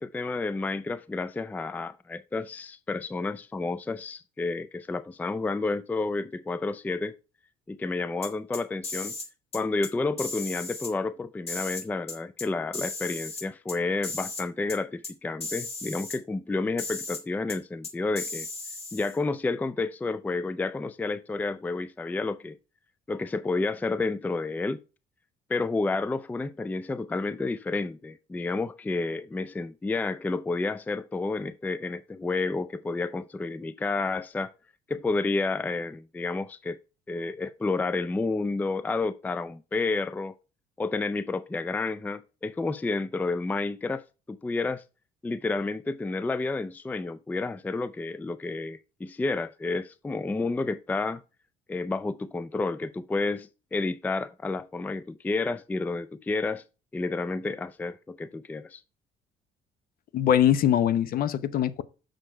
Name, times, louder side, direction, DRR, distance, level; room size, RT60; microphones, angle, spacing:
voice 1, 0.0-7.2 7.7-9.1 9.5-18.5 18.9-22.6 23.1-24.8 25.5-34.5 34.9-36.8 37.1-40.3 40.8-44.8 45.2-51.2 51.7-56.6 56.9-58.8, left 3 dB, 10° left, 0.3 m, -30 dB
sound 1, 8.2-9.3 9.5-9.9 10.2-10.9 11.5-12.5 12.7-13.8 14.0-14.4 14.7-14.8 15.0-15.1 15.4-16.2 16.8-17.2 17.5-17.6 17.8-19.2, left 3 dB, 35° left, 1.8 m, -36 dB
voice 2, 60.1-61.8, left 10 dB, 60° left, 0.8 m, -22 dB
6.4 x 6.4 x 4.4 m
cardioid pair, 110°, 17 cm